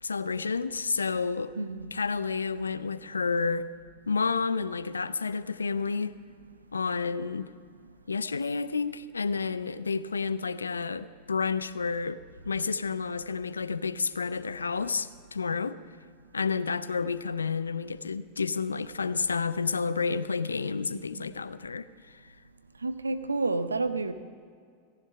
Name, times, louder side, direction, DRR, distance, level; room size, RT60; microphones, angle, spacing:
voice 1, 0.0-1.5 1.9-3.7 4.1-6.1 6.7-7.5 8.1-12.2 12.5-15.8 16.3-22.2, left 5 dB, 85° left, 0.4 m, -30 dB
voice 2, 1.6-1.9 20.9-21.3 22.8-24.1, right 3 dB, 90° right, 0.6 m, -30 dB
15.0 x 11.0 x 5.5 m
hypercardioid pair, 90°, 0 cm